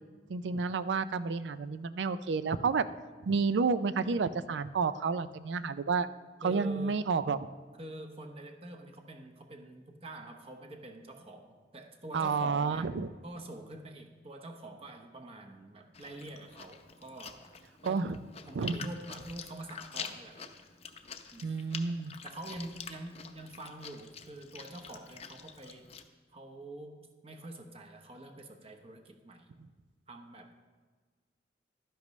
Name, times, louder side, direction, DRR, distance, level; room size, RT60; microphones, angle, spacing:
voice 1, 0.3-2.9 3.2-6.1 6.4-7.4 12.1-13.1 17.8-18.2 18.5-18.8 21.4-22.1, right 5 dB, 90° right, 14 dB, 0.4 m, -30 dB
voice 2, 6.4-7.0 7.8-12.9 13.2-17.4 17.8-18.2 18.5-20.5 21.3-21.6 22.2-25.9 26.3-29.5 30.1-30.5, right 1 dB, 35° right, 3 dB, 0.9 m, -46 dB
Chewing mastication, 15.9-26.0, left 6 dB, 35° left, 0.6 m, -47 dB
12.0 x 10.5 x 3.2 m, 1.5 s
head